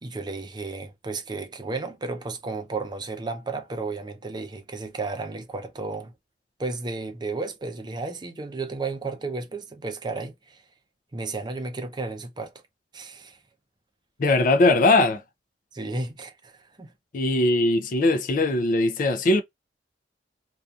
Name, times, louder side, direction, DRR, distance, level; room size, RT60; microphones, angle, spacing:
voice 1, 0.0-6.1 6.6-10.6 11.1-12.5 12.9-13.4 15.7-16.9, right 3 dB, 25° right, 0.5 m, -33 dB
voice 2, 14.2-15.2 17.1-19.4, left 2 dB, 50° left, 0.4 m, -20 dB
2.6 x 2.4 x 2.3 m
head